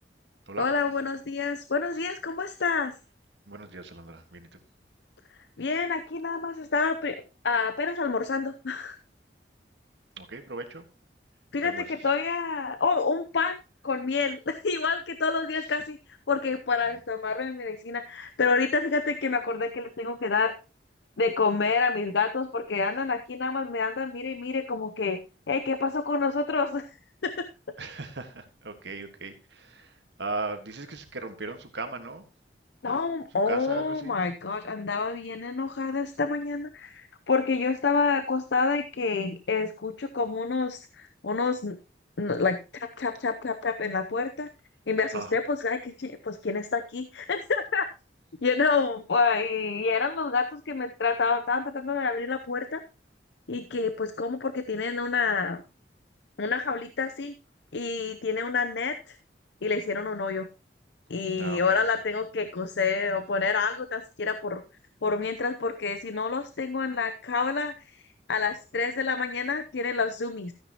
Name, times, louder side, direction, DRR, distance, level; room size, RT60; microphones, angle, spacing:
voice 1, 0.6-2.9 5.6-7.2 7.4-9.0 11.5-13.6 13.8-16.0 16.3-20.5 21.2-25.2 25.5-26.9 27.2-27.5 32.8-41.8 42.2-44.5 44.9-47.8 48.4-52.8 53.5-55.6 56.4-57.3 57.7-59.2 59.6-60.5 61.1-64.6 65.0-67.7 68.3-70.5, left 4 dB, 75° left, 10 dB, 0.7 m, -28 dB
voice 2, 3.5-4.6 10.2-10.8 11.6-11.9 27.8-32.2 33.5-34.2 45.1-45.4 61.4-61.8, right 3 dB, 75° right, 7 dB, 1.6 m, -38 dB
13.0 x 9.6 x 2.9 m, 0.31 s
head